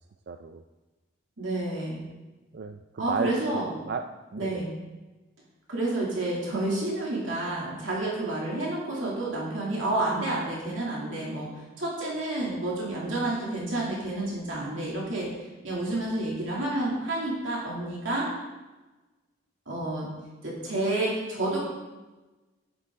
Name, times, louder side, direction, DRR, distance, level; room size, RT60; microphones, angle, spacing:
voice 1, 0.3-0.6 2.5-4.0 4.3-4.5, right 5 dB, 55° right, 6 dB, 0.4 m, -34 dB
voice 2, 1.4-2.0 3.0-3.7 4.4-4.7 5.7-18.3 19.7-20.1 20.4-21.6, right 2 dB, 75° right, -4 dB, 2.5 m, -30 dB
11.0 x 9.2 x 3.6 m, 1.2 s
head